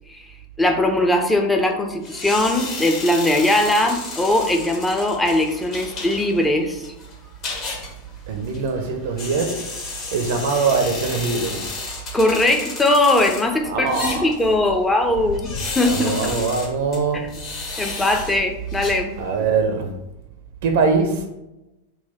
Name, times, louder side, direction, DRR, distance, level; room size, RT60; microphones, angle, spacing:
voice 1, 0.6-6.9 12.1-16.4 17.1-17.3 17.8-19.2, left 1 dB, 10° left, 0.5 m, -20 dB
sound 1, 2.0-19.5, left 3 dB, 35° left, 0.9 m, -33 dB
voice 2, 8.3-11.6 13.6-14.3 15.8-17.2 17.8-18.0 19.2-19.9 20.6-21.3, right 4 dB, 55° right, 0.5 m, -22 dB
3.9 x 2.2 x 4.2 m
figure-of-eight pair, 90°, 0 cm